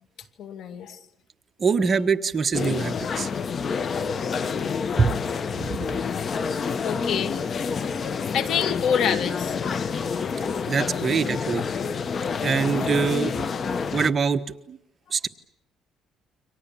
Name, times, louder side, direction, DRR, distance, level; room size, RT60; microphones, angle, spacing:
voice 1, 0.4-1.0 4.1-4.2 6.6-7.7 8.1-9.6 9.9-10.0 10.8-11.1, left 8 dB, 65° left, 9 dB, 2.3 m, -28 dB
voice 2, 1.6-3.3 5.0-5.1 5.7-5.8 10.7-11.6 12.4-13.3 13.9-14.4 14.7-14.8 15.1-15.3, right 5 dB, 35° right, 8 dB, 1.3 m, -23 dB
sound 1, 2.5-14.1, left 5 dB, 40° left, 1.0 m, -28 dB
29.0 x 25.0 x 7.1 m, 0.76 s
cardioid pair, 120°, 0 cm